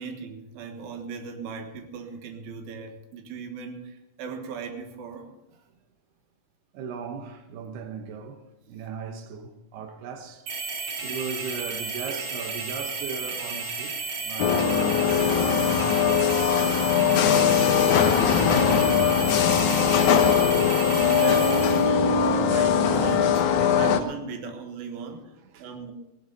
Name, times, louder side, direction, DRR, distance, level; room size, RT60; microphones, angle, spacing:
voice 1, 0.0-5.3 9.8-9.9 19.6-19.8 20.8-23.4 23.7-25.3 25.6-25.9, right 5 dB, 70° right, 3.3 m, -37 dB
voice 2, 6.7-10.7 11.0-16.9 17.4-18.0 20.0-20.7 21.6-22.0 23.6-23.8 25.4-25.7, right 6 dB, 85° right, 3.2 m, -39 dB
sound 1, 10.5-21.9, right 4 dB, 45° right, 3.2 m, -33 dB
sound 2, 14.4-24.0, left 7 dB, 70° left, 1.8 m, -21 dB
17.5 x 12.5 x 4.1 m
omnidirectional pair, 4.5 m